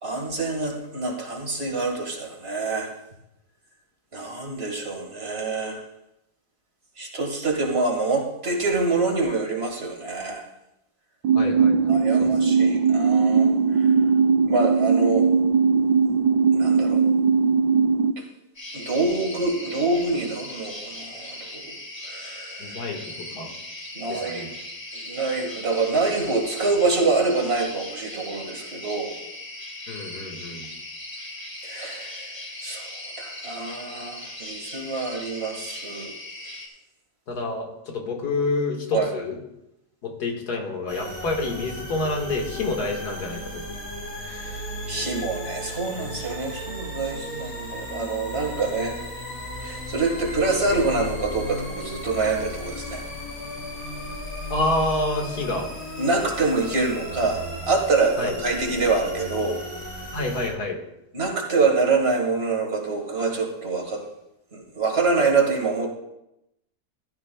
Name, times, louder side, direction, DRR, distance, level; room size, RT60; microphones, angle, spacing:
voice 1, 0.0-2.9 4.1-5.8 7.0-10.4 11.9-13.5 13.7-13.9 14.5-15.3 16.5-17.0 18.2-18.3 18.7-21.8 22.0-22.7 23.9-24.5 24.9-29.2 31.6-36.1 38.9-39.1 44.2-49.0 49.6-53.0 56.0-59.6 59.9-60.0 61.1-64.0 64.5-65.9, right 3 dB, 40° right, 1 dB, 2.0 m, -26 dB
sound 1, 11.2-18.1, right 5 dB, 90° right, 1.2 m, -19 dB
voice 2, 11.3-12.3 22.6-23.5 24.1-24.5 29.9-30.7 37.3-39.4 40.0-43.6 54.5-55.7 58.2-58.3 60.1-60.8, left 2 dB, 90° left, 1 dB, 2.2 m, -28 dB
sound 2, 18.6-36.7, left 1 dB, 15° left, 2.0 m, -38 dB
sound 3, 40.9-60.5, left 1 dB, 65° left, 4.9 m, -35 dB
15.0 x 12.5 x 2.3 m, 0.86 s
omnidirectional pair, 1.7 m